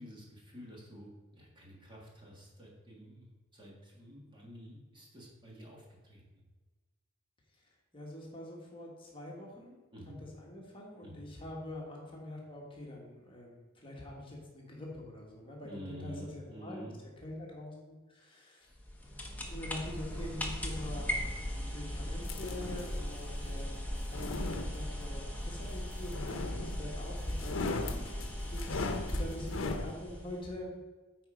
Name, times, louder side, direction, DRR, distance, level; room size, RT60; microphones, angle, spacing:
voice 1, 0.0-6.2 9.9-10.2 11.0-11.2 15.6-17.0, equal, 25° right, -3 dB, 1.8 m, -49 dB
voice 2, 7.6-9.8 10.2-16.8 17.2-18.7 19.5-21.1 21.5-30.8, left 1 dB, 25° left, -2 dB, 1.5 m, -45 dB
sound 1, 18.7-30.5, left 1 dB, 10° left, 0.9 m, -38 dB
sound 2, 22.3-23.0 23.9-25.2 26.1-27.0 27.3-29.9, left 3 dB, 85° left, 0.7 m, -38 dB
9.2 x 4.4 x 4.9 m, 1.3 s
head